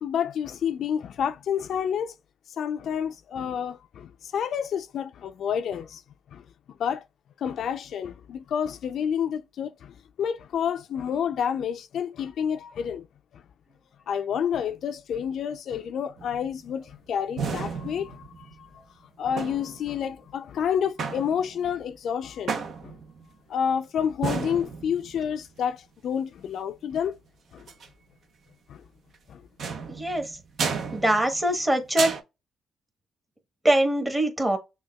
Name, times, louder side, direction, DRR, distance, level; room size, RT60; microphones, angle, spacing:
voice 1, 0.0-2.1 2.6-6.0 6.3-6.4 6.8-7.0 7.4-13.1 13.3-13.4 14.1-18.8 19.2-22.6 22.8-22.9 23.5-27.2 27.5-27.7 28.7-28.8 29.3-29.4, left 8 dB, 65° left, 0.4 m, -29 dB
sound 1, 16.2-16.7 17.4-18.6 19.4-20.0 21.0-21.7 22.5-23.2 24.2-25.3 27.6-27.9 29.6-31.7 32.0-32.2, right 5 dB, 60° right, 0.8 m, -32 dB
voice 2, 29.9-30.3 30.9-32.1 33.6-34.6, right 1 dB, 15° right, 1.3 m, -23 dB
6.2 x 2.3 x 2.3 m
cardioid pair, 90°, 0 cm